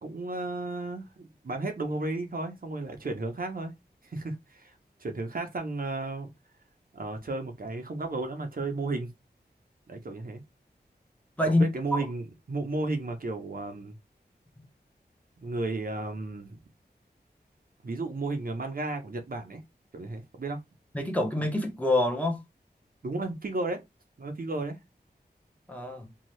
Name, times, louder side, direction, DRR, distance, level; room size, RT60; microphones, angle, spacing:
voice 1, 0.0-3.8 4.0-6.3 6.9-9.1 9.9-10.4 11.4-14.0 15.4-16.6 17.8-19.6 19.9-20.6 23.0-23.8 24.2-24.8, right 2 dB, 55° right, 0.7 m, -33 dB
voice 2, 20.9-22.4 25.7-26.1, left 1 dB, 10° left, 0.8 m, -26 dB
2.7 x 2.3 x 3.1 m
wide cardioid pair, 70°, 17 cm